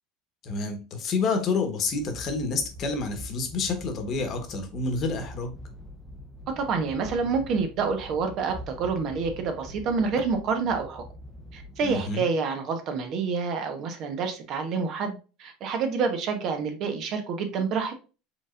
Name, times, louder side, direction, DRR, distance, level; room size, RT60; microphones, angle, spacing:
voice 1, 0.4-5.5 11.8-12.2, left 4 dB, 45° left, 6 dB, 1.2 m, -28 dB
sound 1, 1.9-12.0, left 1 dB, 5° right, 0.7 m, -44 dB
voice 2, 6.6-11.0 11.5-18.0, right 5 dB, 50° right, 6 dB, 1.0 m, -28 dB
5.1 x 3.6 x 2.5 m, 0.34 s
supercardioid pair, 120°, 0 cm